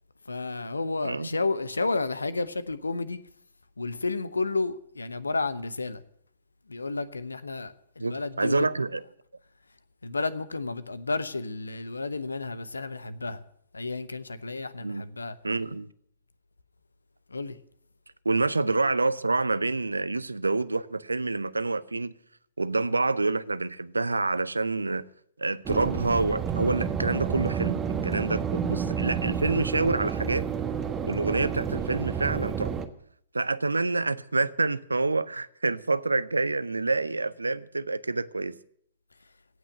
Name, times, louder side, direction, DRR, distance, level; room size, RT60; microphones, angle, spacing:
voice 1, 0.3-3.2 3.8-6.0 6.7-8.7 10.0-13.4 13.7-15.4 17.3-17.6, left 3 dB, 80° left, 0.9 m, -31 dB
voice 2, 8.0-9.0 14.8-15.1 15.4-15.9 18.2-22.1 22.6-25.0 25.4-27.8 28.0-30.4 31.0-32.7 33.3-38.6, right 3 dB, 80° right, 0.6 m, -27 dB
sound 1, 25.7-32.9, right 7 dB, 20° right, 1.2 m, -30 dB
17.0 x 6.2 x 10.0 m
figure-of-eight pair, 110°, 0 cm